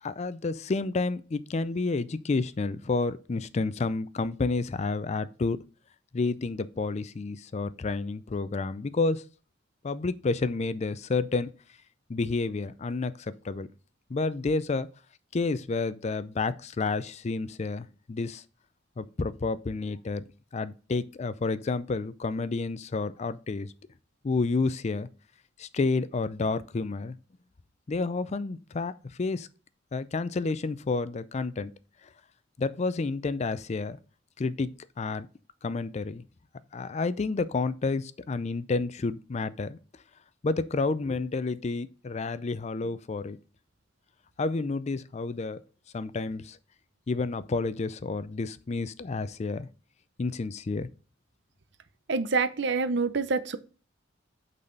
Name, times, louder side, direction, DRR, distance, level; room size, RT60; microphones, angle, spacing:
voice 1, 0.0-5.6 6.1-9.3 9.8-11.5 12.1-13.7 14.1-14.9 15.3-18.4 19.0-20.2 20.5-23.7 24.2-25.1 25.6-27.2 27.9-28.9 29.2-29.5 29.9-31.7 32.6-34.0 34.4-34.7 35.0-35.3 35.6-36.2 36.7-39.8 40.4-43.4 44.4-45.6 45.9-46.6 47.1-49.7 50.2-50.9, left 3 dB, 35° left, 0.4 m, -30 dB
voice 2, 52.1-53.6, right 4 dB, 65° right, 0.7 m, -26 dB
8.6 x 4.1 x 5.2 m
head